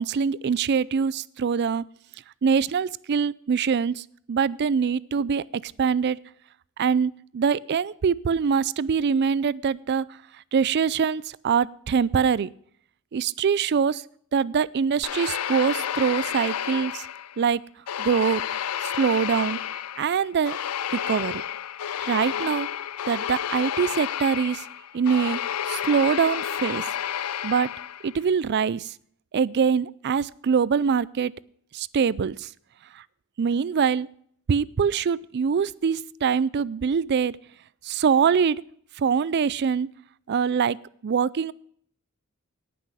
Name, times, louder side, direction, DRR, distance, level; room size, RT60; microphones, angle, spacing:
voice 1, 0.0-1.8 2.4-6.2 6.8-10.1 10.5-12.5 13.1-14.0 14.3-17.1 17.4-17.6 18.0-18.4 18.8-19.6 20.0-20.6 20.9-21.4 22.0-22.7 23.1-24.6 24.9-25.4 25.6-26.9 27.4-27.7 28.0-28.9 29.3-31.3 31.7-32.5 32.9-33.0 33.4-34.1 34.5-37.4 37.8-38.6 39.0-39.9 40.3-40.8 41.0-41.5, right 6 dB, 50° right, 21 dB, 0.4 m, -24 dB
sound 1, 15.0-17.5 17.9-28.2, left 9 dB, 85° left, 0.5 m, -31 dB
18.0 x 6.1 x 4.9 m, 0.63 s
head